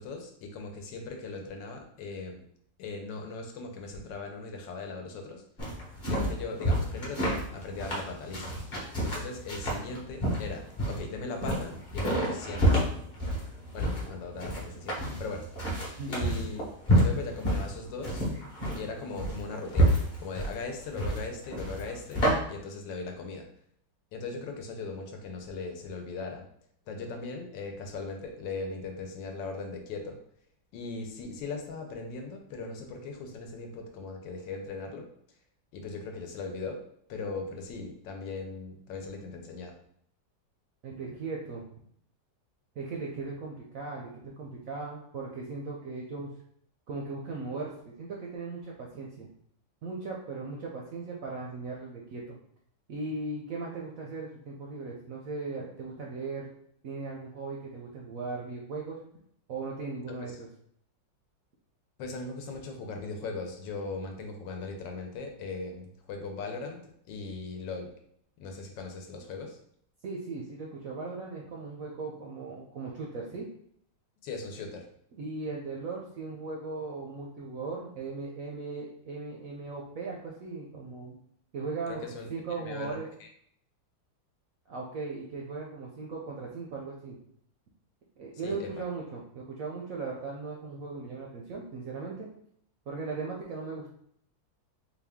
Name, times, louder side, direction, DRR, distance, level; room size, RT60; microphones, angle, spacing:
voice 1, 0.0-2.4 2.8-5.4 6.0-8.6 9.0-12.9 13.7-15.4 16.1-16.6 16.9-18.3 18.7-22.2 22.5-23.5 24.1-26.4 26.9-30.2 30.7-35.1 35.7-36.8 37.1-39.7 62.0-66.8 67.1-67.9 68.4-69.6 74.2-74.9 81.9-82.3 82.6-83.3 88.4-88.8, left 3 dB, 80° left, 3 dB, 1.4 m, -39 dB
sound 1, 5.6-22.3, equal, 30° left, 1.0 m, -29 dB
voice 2, 40.8-41.7 42.8-46.3 46.9-49.3 49.8-52.2 52.9-56.5 56.8-59.0 59.5-60.5 70.0-73.5 75.1-81.2 81.5-83.1 84.7-87.2 88.2-92.3 92.9-93.9, right 3 dB, 70° right, -2 dB, 0.8 m, -38 dB
4.1 x 2.3 x 3.5 m, 0.67 s
omnidirectional pair, 2.0 m